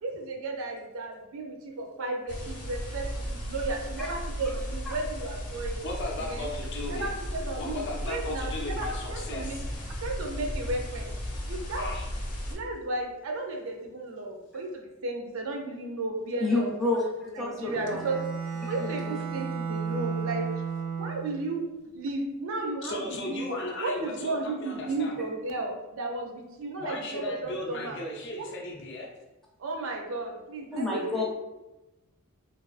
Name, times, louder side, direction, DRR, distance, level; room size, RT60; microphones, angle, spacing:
voice 1, 0.0-5.8 6.2-6.5 6.8-9.6 10.0-11.1 11.4-11.9 12.5-16.7 17.4-18.2 18.7-20.5 21.0-21.6 21.9-28.0 28.4-28.5 29.6-31.2, right 2 dB, 60° right, 2 dB, 0.4 m, -34 dB
sound 1, 2.3-12.5, equal, 85° left, 0.7 m, -35 dB
voice 2, 5.8-7.2 7.5-9.7 11.7-12.1 22.8-25.2 26.8-29.1, left 2 dB, 55° left, 0 dB, 0.5 m, -36 dB
voice 3, 16.4-18.0 18.8-19.1 30.7-31.2, left 2 dB, ahead, -4 dB, 0.4 m, -29 dB
Bowed string instrument, 17.6-21.5, right 6 dB, 85° right, 0.8 m, -33 dB
2.5 x 2.3 x 2.4 m, 1.0 s
head